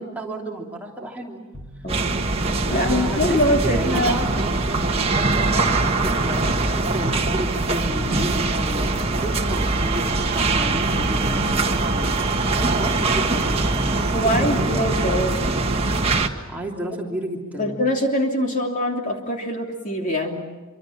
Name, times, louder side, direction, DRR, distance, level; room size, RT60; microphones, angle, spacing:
voice 1, 0.0-1.4 2.7-6.4 6.7-8.9 9.2-11.6 11.9-15.0 16.5-17.9, right 1 dB, 5° right, -2 dB, 3.1 m, -32 dB
sound 1, 1.5-5.5 5.8-9.8 10.1-10.9 11.2-12.1 12.4-16.4 17.6-17.8, right 1 dB, 10° left, 5.9 m, -37 dB
voice 2, 1.8-2.2 2.7-4.2 14.1-15.4 17.6-20.4, equal, 35° left, 1 dB, 3.1 m, -23 dB
sound 2, 1.9-16.3, right 3 dB, 30° right, 1.5 m, -22 dB
27.0 x 25.5 x 7.4 m, 1.2 s
head